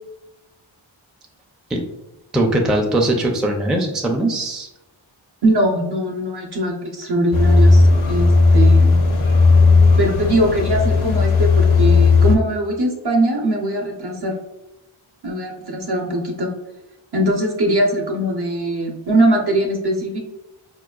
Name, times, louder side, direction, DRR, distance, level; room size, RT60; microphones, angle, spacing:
voice 1, 2.3-4.7, right 1 dB, ahead, 1 dB, 0.4 m, -20 dB
voice 2, 5.4-9.0 10.0-14.3 15.2-16.5 17.1-20.2, right 1 dB, 55° right, 1 dB, 0.7 m, -21 dB
sound 1, 7.3-12.4, left 3 dB, 80° left, 0.6 m, -14 dB
4.6 x 2.2 x 2.3 m, 0.92 s
wide cardioid pair, 50°, 49 cm